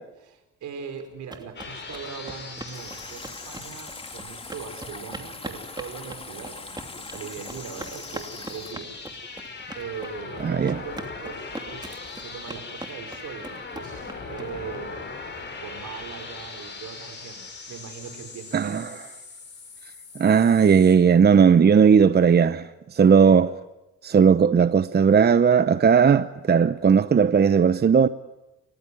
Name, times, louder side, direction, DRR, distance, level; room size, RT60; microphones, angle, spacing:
voice 1, 0.2-9.0 9.7-15.1 15.6-19.0 23.2-23.4, right 6 dB, 75° right, 4.7 m, -40 dB
sound 1, 1.0-14.8, right 2 dB, 15° right, 2.9 m, -41 dB
sound 2, 1.6-21.0, left 4 dB, 35° left, 6.5 m, -40 dB
Stream, 2.7-8.7, left 3 dB, 20° left, 2.1 m, -42 dB
voice 2, 10.4-10.7 18.5-18.9 20.2-23.5 24.0-28.1, right 6 dB, 35° right, 0.8 m, -17 dB
29.5 x 15.5 x 9.8 m
cardioid pair, 90°, 30 cm